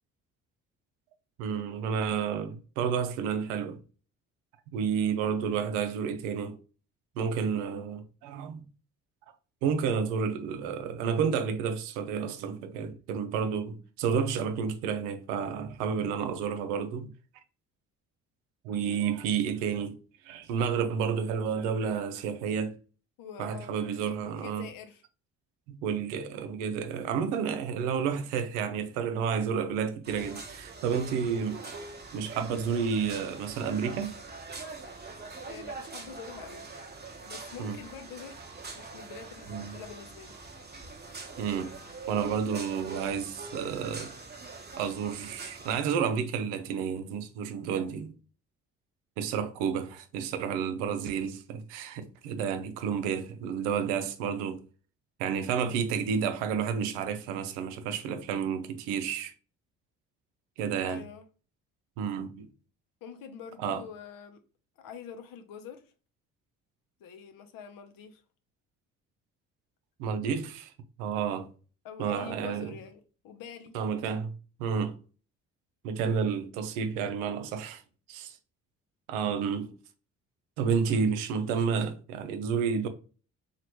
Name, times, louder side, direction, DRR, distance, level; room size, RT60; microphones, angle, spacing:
voice 1, 1.4-3.8 4.7-6.6 7.2-8.6 9.6-17.1 18.6-20.0 20.2-22.7 23.4-24.7 25.7-31.6 32.1-34.1 37.6-37.8 39.5-39.7 41.4-41.7 42.1-44.1 44.8-48.1 49.2-54.6 55.2-59.3 60.6-61.1 62.0-62.5 63.6-63.8 70.0-70.7 71.0-71.5 72.0-72.8 73.7-74.3 74.6-75.0 75.8-77.8 78.1-78.4 79.1-79.7 80.6-82.9, right 6 dB, 85° right, 0.5 m, -30 dB
voice 2, 23.2-23.8 24.2-25.0 35.5-36.7 37.2-38.4 38.7-40.4 60.9-61.2 63.0-64.4 64.8-65.8 67.0-68.2 71.8-73.8, left 7 dB, 65° left, 0.7 m, -45 dB
sound 1, 30.0-45.8, right 3 dB, 25° right, 0.8 m, -43 dB
3.0 x 2.4 x 2.9 m
hypercardioid pair, 50°, 37 cm